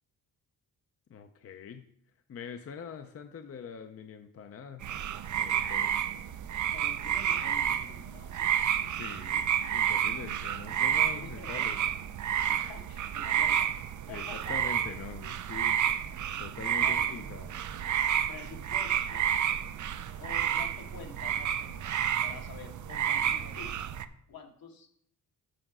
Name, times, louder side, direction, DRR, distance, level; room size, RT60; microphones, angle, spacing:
voice 1, 1.1-1.8 2.3-4.8 5.4-5.9 8.9-11.8 14.1-15.8 16.4-17.5, left 7 dB, 40° left, 7 dB, 0.5 m, -44 dB
sound 1, 4.8-24.1, right 9 dB, 55° right, 0.5 m, -30 dB
voice 2, 6.7-8.5 11.1-11.7 12.4-13.7 14.1-14.6 16.8-17.1 18.3-19.3 20.2-23.8 24.3-24.9, left 5 dB, 75° left, 2 dB, 1.5 m, -48 dB
7.6 x 5.0 x 6.1 m, 0.69 s
wide cardioid pair, 130°, 36 cm